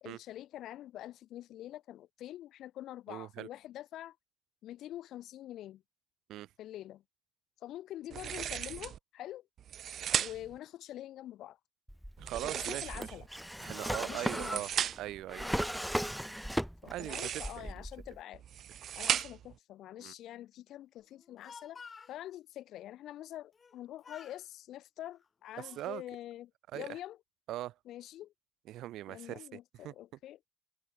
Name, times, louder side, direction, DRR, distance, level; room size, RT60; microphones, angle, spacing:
voice 1, 0.0-4.2 4.6-5.8 6.6-7.0 7.6-9.5 10.1-11.6 12.4-13.3 14.0-14.7 16.8-18.4 19.0-21.8 22.1-27.2 27.8-28.3 29.1-30.5, left 13 dB, 80° left, 1.4 m, -46 dB
voice 2, 3.1-3.5 6.3-6.5 12.2-13.1 13.6-14.7 15.0-15.7 16.8-17.3 17.6-17.8 20.0-20.1 25.6-26.0 26.7-27.0 27.5-27.7 28.7-29.9, right 14 dB, 85° right, 0.4 m, -41 dB
sound 1, 8.1-9.0 9.6-10.6 12.2-13.3 14.1-15.2 16.9-17.7 18.3-19.6, right 10 dB, 65° right, 1.2 m, -36 dB
Drawer open or close, 11.9-17.1 17.4-18.2, equal, ahead, 0.4 m, -36 dB
Speech, 21.2-22.2 23.5-23.8 24.0-24.4 25.1-26.0, left 5 dB, 40° left, 2.6 m, -52 dB
cardioid pair, 90°, 0 cm